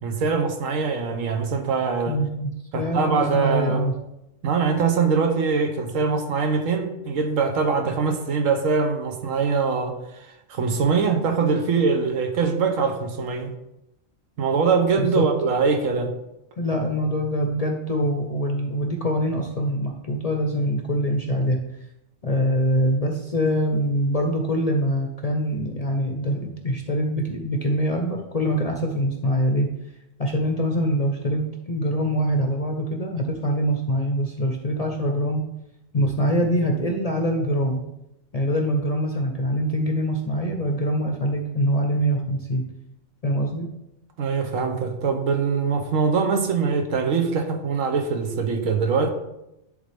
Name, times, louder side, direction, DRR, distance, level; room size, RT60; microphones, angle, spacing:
voice 1, 0.0-2.2 2.7-3.8 4.4-13.5 14.4-16.1 44.2-49.1, right 5 dB, 80° right, 5 dB, 1.3 m, -23 dB
voice 2, 2.1-3.9 15.0-15.3 16.6-21.6 22.2-29.7 30.2-35.4 35.9-37.9 38.3-42.7 43.2-43.7, equal, 40° left, 3 dB, 0.6 m, -24 dB
11.0 x 3.7 x 3.4 m, 0.88 s
omnidirectional pair, 1.4 m